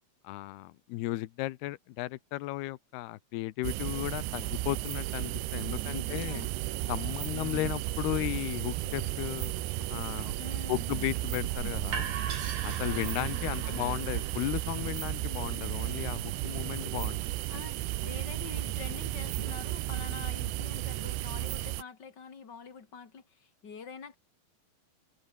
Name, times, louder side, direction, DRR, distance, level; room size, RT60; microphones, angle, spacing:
voice 1, 0.2-6.4 6.9-9.5 9.9-10.3 10.7-12.1 12.6-17.2, left 17 dB, 75° left, 2.8 m, -35 dB
sound 1, 3.6-21.8, right 17 dB, 80° right, 3.1 m, -34 dB
voice 2, 5.8-6.5 7.3-7.7 10.4-11.2 12.8-14.0 17.5-24.2, left 5 dB, 30° left, 2.7 m, -46 dB
sound 2, 6.2-21.6, right 5 dB, 40° right, 4.6 m, -46 dB
sound 3, 11.4-17.2, right 6 dB, 60° right, 5.9 m, -41 dB
omnidirectional pair, 4.9 m